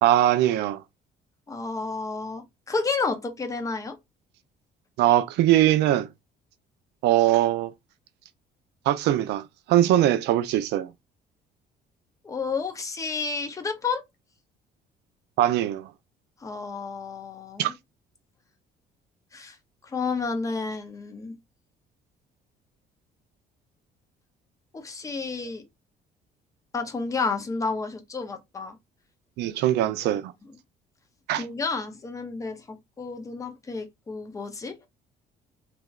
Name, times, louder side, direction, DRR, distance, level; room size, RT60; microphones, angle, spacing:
voice 1, 0.0-0.8 5.0-6.1 7.0-7.7 8.9-10.9 15.4-15.9 17.6-17.7 29.4-30.3 31.3-31.4, right 13 dB, 80° right, 0.4 m, -21 dB
voice 2, 1.5-4.0 12.2-14.0 16.4-17.7 19.3-19.6 19.8-21.4 24.7-25.6 26.7-28.8 29.9-30.0 30.4-30.5 31.4-34.7, left 4 dB, 20° left, 0.6 m, -31 dB
3.2 x 2.9 x 2.3 m
cardioid pair, 155°, 17 cm